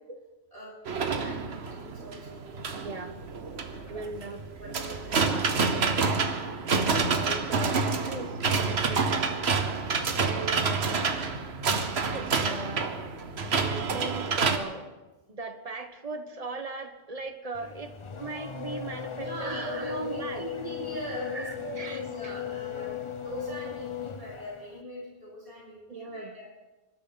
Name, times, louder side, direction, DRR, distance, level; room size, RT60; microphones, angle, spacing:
voice 1, 0.5-3.0 3.3-4.1 4.6-6.2 6.6-6.9 19.1-26.5, equal, 60° right, -5 dB, 7.2 m, -41 dB
sound 1, 0.9-14.6, right 4 dB, 85° right, 1.4 m, -28 dB
voice 2, 2.8-3.3 3.9-4.5 6.7-8.4 8.7-9.5 10.2-11.1 12.1-12.9 13.4-14.9 15.3-20.5 21.3-22.3 25.9-26.3, right 3 dB, 35° right, 7 dB, 1.2 m, -38 dB
Race car auto racing / Accelerating revving vroom, 17.5-24.8, left 8 dB, 35° left, 0.6 m, -37 dB
25.5 x 12.5 x 4.0 m, 1.2 s
omnidirectional pair, 1.1 m